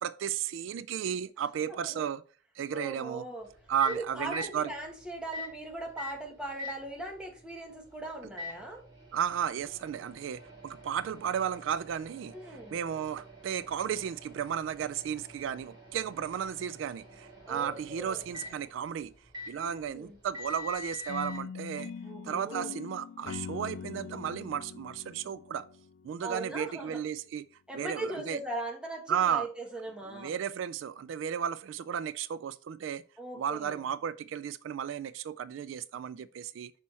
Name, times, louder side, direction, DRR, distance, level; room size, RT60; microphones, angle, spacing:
voice 1, 0.0-2.2 2.6-3.2 3.7-4.7 9.1-19.1 19.5-21.9 22.2-25.7 26.0-27.5 27.7-28.4 29.1-29.5 30.1-33.0 33.4-36.7, right 8 dB, 80° right, 0.3 m, -34 dB
voice 2, 1.7-2.0 2.7-3.5 3.8-8.8 12.3-12.8 17.5-18.2 19.5-20.2 22.0-22.7 26.2-27.0 27.7-30.3 33.2-33.8, right 2 dB, 5° right, 1.3 m, -39 dB
Microwave oven, 3.4-21.4, left 2 dB, 25° right, 2.9 m, -47 dB
sound 1, 21.1-26.2, left 6 dB, 65° left, 0.3 m, -42 dB
6.1 x 4.3 x 4.2 m
head